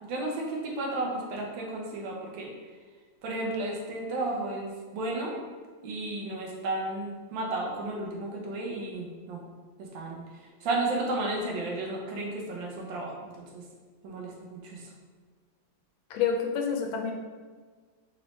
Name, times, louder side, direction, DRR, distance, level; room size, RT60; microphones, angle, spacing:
voice 1, 0.0-2.5 3.2-5.4 5.8-9.4 9.8-13.6 14.0-14.9, right 2 dB, 80° right, -1 dB, 1.5 m, -33 dB
voice 2, 16.1-17.1, left 6 dB, 90° left, 2 dB, 1.4 m, -28 dB
4.2 x 3.1 x 3.0 m, 1.4 s
omnidirectional pair, 2.1 m